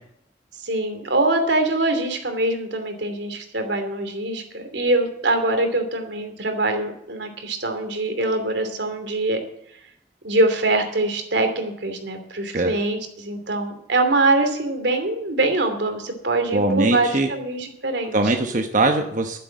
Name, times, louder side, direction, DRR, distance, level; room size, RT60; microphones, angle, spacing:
voice 1, 0.6-9.4 10.2-18.3, right 2 dB, 85° right, 6 dB, 2.8 m, -23 dB
voice 2, 16.5-17.3 18.1-19.4, right 2 dB, 45° right, 4 dB, 1.0 m, -21 dB
11.5 x 11.0 x 7.4 m, 0.74 s
head